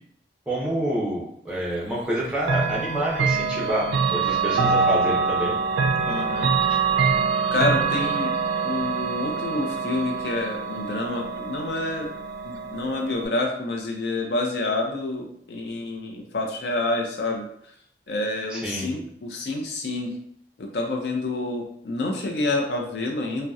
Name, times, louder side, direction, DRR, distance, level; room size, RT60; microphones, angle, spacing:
voice 1, 0.5-5.6 18.5-18.9, right 1 dB, 5° right, -5 dB, 0.6 m, -28 dB
Chime / Clock, 2.4-13.3, right 5 dB, 85° right, 0.3 m, -25 dB
voice 2, 6.1-6.5 7.5-8.3 8.6-12.1 12.4-17.7 18.1-20.2 20.6-23.5, left 2 dB, 70° left, 1 dB, 0.5 m, -28 dB
2.7 x 2.0 x 2.3 m, 0.67 s
head